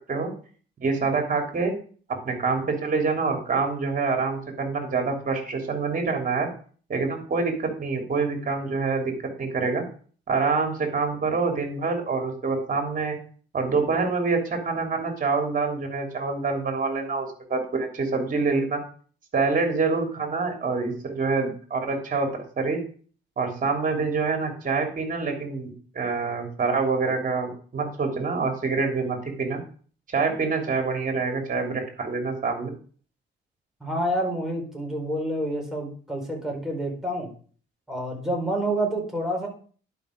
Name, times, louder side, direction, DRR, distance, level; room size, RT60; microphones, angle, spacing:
voice 1, 0.8-1.7 2.1-6.5 6.9-9.1 9.4-9.8 10.3-13.2 13.5-18.8 19.3-22.8 23.4-29.6 30.1-32.7, right 4 dB, 45° right, 3 dB, 3.2 m, -26 dB
voice 2, 33.8-37.3 37.9-39.5, right 1 dB, ahead, -1 dB, 4.5 m, -28 dB
11.0 x 5.7 x 5.1 m, 0.43 s
cardioid pair, 90°, 20 cm